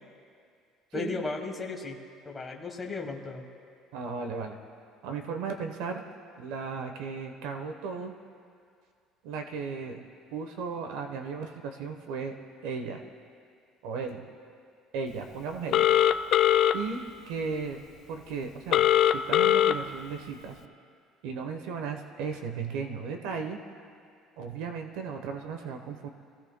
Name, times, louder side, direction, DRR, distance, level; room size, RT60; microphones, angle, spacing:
voice 1, 0.9-2.0 2.2-3.4, left 3 dB, 10° left, 1 dB, 1.3 m, -35 dB
voice 2, 3.9-4.6 5.0-6.0 6.4-8.1 9.2-10.0 10.3-12.3 12.6-13.0 13.8-14.2 14.9-15.9 16.7-17.8 18.1-20.6 21.2-23.6 24.4-26.1, right 5 dB, 85° right, 5 dB, 1.0 m, -35 dB
Telephone, 15.7-16.7 18.7-19.7, left 11 dB, 45° left, 0.4 m, -21 dB
25.5 x 16.5 x 2.2 m, 2.3 s
cardioid pair, 160°, 0 cm